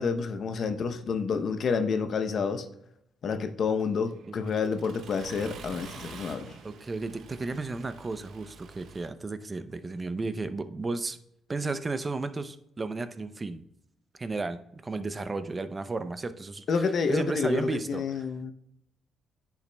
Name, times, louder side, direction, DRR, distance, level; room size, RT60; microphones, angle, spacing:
voice 1, 0.0-2.7 3.2-6.5 16.7-18.5, left 5 dB, 55° left, 0.7 m, -29 dB
Accelerating revving vroom, 3.8-9.1, right 6 dB, 70° right, 0.7 m, -48 dB
voice 2, 6.6-11.2 11.5-13.6 14.2-18.3, right 3 dB, 25° right, 0.5 m, -33 dB
10.0 x 5.9 x 2.2 m
cardioid pair, 90°, 0 cm